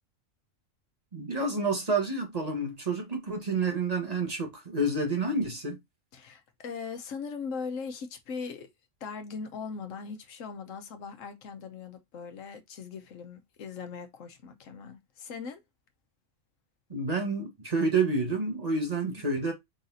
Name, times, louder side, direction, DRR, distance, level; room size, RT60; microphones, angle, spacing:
voice 1, 1.1-5.8 16.9-19.5, right 3 dB, 30° right, 1.4 m, -29 dB
voice 2, 6.1-8.7 9.0-15.6 19.0-19.3, left 5 dB, 80° left, 1.2 m, -40 dB
4.0 x 4.0 x 2.6 m
omnidirectional pair, 1.3 m